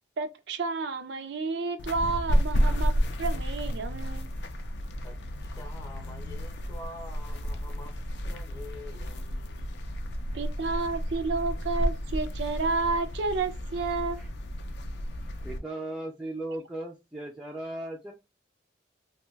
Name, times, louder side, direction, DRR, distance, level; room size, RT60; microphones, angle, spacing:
voice 1, 0.2-2.9 3.2-4.3 10.3-14.2, right 3 dB, 70° right, 0.4 m, -30 dB
sound 1, 1.8-15.6, equal, 70° left, 0.5 m, -31 dB
voice 2, 5.0-7.9 8.2-9.8, left 2 dB, 20° left, 0.7 m, -46 dB
voice 3, 15.4-18.1, right 1 dB, 5° right, 0.4 m, -37 dB
2.6 x 2.2 x 3.1 m
head